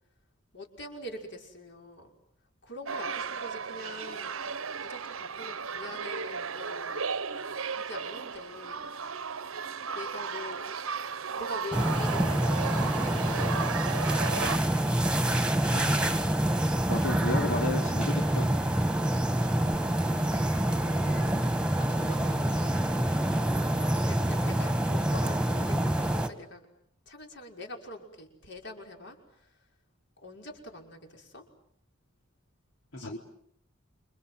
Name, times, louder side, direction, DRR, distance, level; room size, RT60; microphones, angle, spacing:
voice 1, 0.5-2.1 2.6-6.9 7.8-8.9 9.9-10.7 11.4-13.6 20.8-21.4 21.8-22.9 23.8-26.7 27.1-29.6 30.2-31.4 33.0-33.2, left 1 dB, 60° left, 2 dB, 5.7 m, -44 dB
sound 1, 2.9-14.6, right 5 dB, 90° right, 1.1 m, -35 dB
sound 2, 11.7-26.3, right 1 dB, 5° right, 1.8 m, -27 dB
voice 2, 16.9-18.5 32.9-33.2, left 2 dB, 85° left, 2 dB, 3.0 m, -33 dB
28.5 x 26.0 x 7.8 m, 0.70 s
head